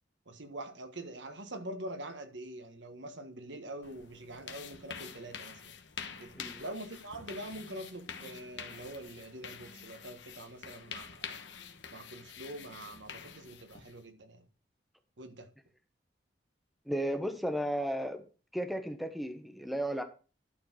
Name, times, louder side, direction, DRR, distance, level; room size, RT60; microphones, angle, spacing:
voice 1, 0.3-5.7 6.2-6.3 6.6-11.4 11.9-14.4 15.2-15.5, right 1 dB, 80° right, 1.5 m, -44 dB
sound 1, 3.8-14.0, left 7 dB, 85° left, 1.2 m, -47 dB
voice 2, 16.9-18.2 18.5-20.0, equal, ahead, 0.9 m, -34 dB
11.5 x 4.6 x 6.1 m
head